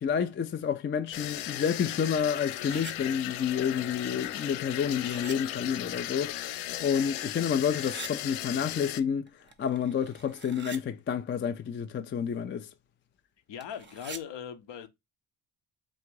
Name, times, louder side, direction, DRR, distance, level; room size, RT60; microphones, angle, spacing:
voice 1, 0.0-6.4 6.8-9.3 9.6-12.7, left 7 dB, 25° left, 0.4 m, -29 dB
sound 1, 1.1-9.0, left 14 dB, 75° left, 0.6 m, -36 dB
sound 2, 1.5-2.9 4.1-5.4 6.2-6.3 6.7-8.1 9.3-10.8 13.6-14.2, right 4 dB, 25° right, 0.8 m, -47 dB
voice 2, 13.5-14.9, left 9 dB, 60° left, 0.9 m, -39 dB
3.7 x 2.5 x 4.5 m
supercardioid pair, 70°, 49 cm